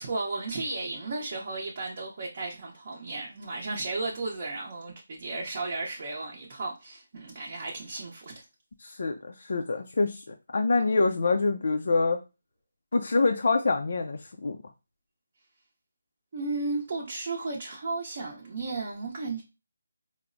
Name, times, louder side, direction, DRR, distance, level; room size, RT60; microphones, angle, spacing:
voice 1, 0.0-8.4 16.3-19.4, right 3 dB, 40° right, 0.6 m, -34 dB
voice 2, 8.8-12.2 12.9-14.6, left 3 dB, 60° left, 0.4 m, -26 dB
4.5 x 2.0 x 2.5 m
figure-of-eight pair, 165°, 0 cm